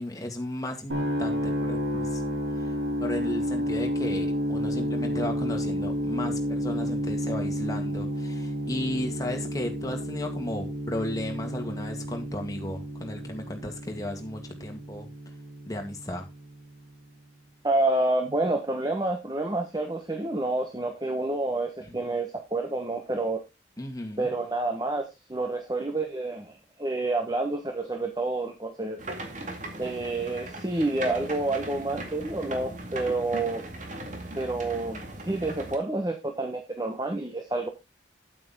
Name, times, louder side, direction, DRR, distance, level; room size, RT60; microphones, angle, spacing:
voice 1, 0.0-2.2 2.6-2.7 3.0-15.1 15.7-16.3 21.8-22.0 23.8-24.3, left 1 dB, 20° left, 2.0 m, -35 dB
sound 1, 0.9-16.8, equal, 75° right, 3.2 m, -31 dB
voice 2, 17.6-23.4 24.2-29.0 29.8-33.6 34.4-37.7, right 2 dB, 20° right, 1.2 m, -29 dB
sound 2, 29.0-35.8, right 2 dB, 40° right, 2.2 m, -38 dB
9.0 x 8.7 x 3.7 m
head